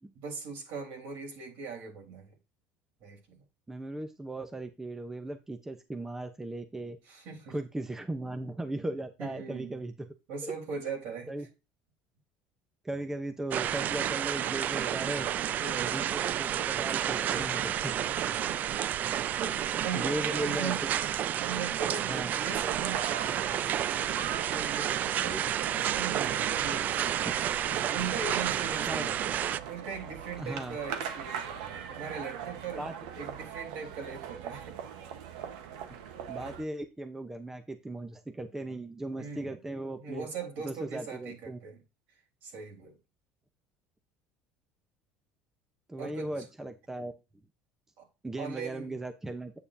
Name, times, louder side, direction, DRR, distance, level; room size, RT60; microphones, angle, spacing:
voice 1, 0.2-2.3 3.0-3.4 7.1-7.6 9.2-9.8 10.3-11.3 15.6-16.0 17.2-17.7 18.0-18.2 18.4-18.7 19.4-20.8 21.4-23.5 24.3-29.3 29.7-32.8 33.2-34.8 39.2-39.5 40.0-41.8 42.4-43.0 46.0-46.3 48.0-48.1 48.4-49.0, right 5 dB, 70° right, 3.8 m, -40 dB
voice 2, 3.7-7.0 7.5-9.9 10.4-10.5 11.3-11.5 12.8-15.3 15.7-17.9 19.9-20.7 22.1-22.4 25.1-25.4 28.9-29.1 30.4-30.8 32.8-32.9 36.3-40.3 40.6-41.6 45.9-47.1 48.2-49.5, right 1 dB, 10° right, 0.8 m, -37 dB
sound 1, 13.5-29.6, right 10 dB, 45° right, 0.3 m, -30 dB
sound 2, 22.7-36.6, right 8 dB, 85° right, 1.1 m, -41 dB
8.5 x 6.8 x 2.7 m
supercardioid pair, 105°, 4 cm